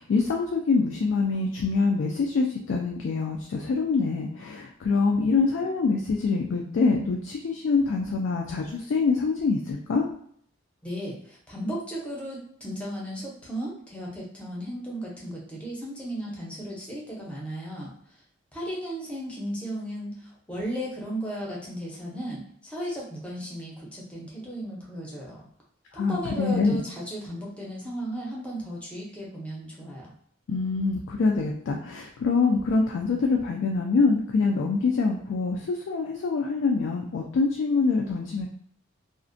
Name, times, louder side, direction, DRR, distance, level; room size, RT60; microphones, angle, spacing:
voice 1, 0.0-10.1 25.9-26.8 30.5-38.5, left 4 dB, 75° left, 0 dB, 0.3 m, -25 dB
voice 2, 10.8-17.9 18.5-25.4 25.9-30.1, equal, 5° left, -4 dB, 0.6 m, -35 dB
2.4 x 2.1 x 2.5 m, 0.64 s
head